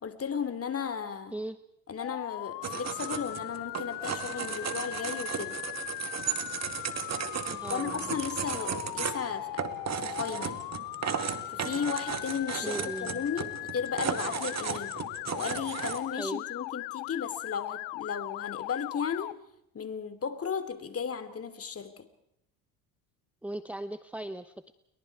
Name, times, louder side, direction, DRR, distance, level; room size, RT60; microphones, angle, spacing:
voice 1, 0.0-1.3 1.9-5.6 7.7-9.7 10.0-10.6 11.5-15.0 15.4-19.4 19.7-22.1, left 7 dB, 30° left, 11 dB, 2.9 m, -35 dB
Motor vehicle (road) / Siren, 2.0-19.3, left 23 dB, 70° left, 0.7 m, -39 dB
sound 1, 2.6-16.0, right 7 dB, 35° right, 2.4 m, -35 dB
voice 2, 7.5-8.1 12.6-13.2 16.1-16.4 23.4-24.7, right 1 dB, 5° right, 11 dB, 0.9 m, -38 dB
29.0 x 23.0 x 4.8 m, 0.79 s
supercardioid pair, 85°, 44 cm